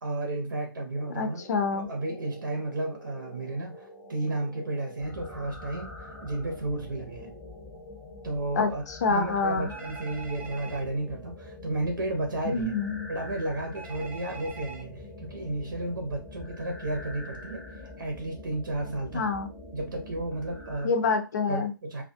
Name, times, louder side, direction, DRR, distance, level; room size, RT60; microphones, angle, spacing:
voice 1, 0.0-1.4 1.7-7.3 8.2-12.7 13.1-17.6 18.0-19.3 19.7-21.0 21.5-22.0, right 2 dB, 65° right, 3 dB, 0.7 m, -33 dB
sound 1, 0.9-20.9, left 1 dB, 10° left, 0.7 m, -44 dB
voice 2, 1.2-1.9 8.6-9.7 12.5-13.1 19.1-19.5 20.8-21.7, left 4 dB, 50° left, 6 dB, 0.6 m, -27 dB
Telephone, 9.7-10.8 13.7-14.8, right 5 dB, 15° right, 0.4 m, -43 dB
2.3 x 2.2 x 2.6 m, 0.29 s
figure-of-eight pair, 135°, 12 cm